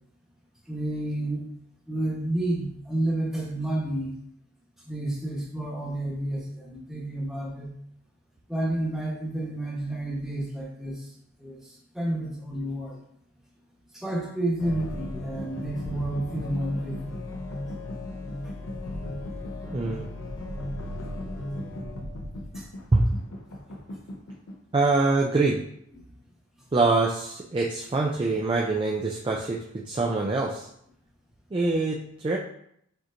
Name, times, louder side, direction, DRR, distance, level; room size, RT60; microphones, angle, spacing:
voice 1, 0.7-1.5 1.9-4.1 4.9-7.7 8.5-11.0 11.4-13.0 13.9-17.2 22.5-22.6, right 1 dB, ahead, -5 dB, 1.0 m, -30 dB
sound 1, 14.6-24.5, left 1 dB, 65° left, 0.7 m, -36 dB
voice 2, 19.7-20.1 22.9-23.1 24.7-25.6 26.7-30.7 31.5-32.0 32.2-32.4, right 3 dB, 20° right, -1 dB, 0.3 m, -24 dB
6.5 x 2.9 x 2.5 m, 0.70 s
head